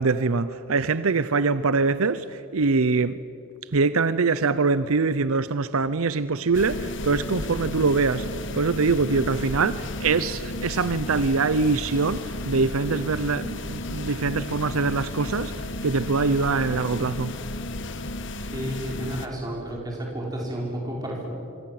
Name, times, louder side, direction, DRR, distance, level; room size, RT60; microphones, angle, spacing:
voice 1, 0.0-3.2 3.7-17.3, right 4 dB, 75° right, 0.7 m, -24 dB
sound 1, 6.5-19.3, left 1 dB, 55° left, 1.3 m, -33 dB
voice 2, 18.5-21.3, equal, 15° right, 5.6 m, -31 dB
27.0 x 24.0 x 7.8 m
head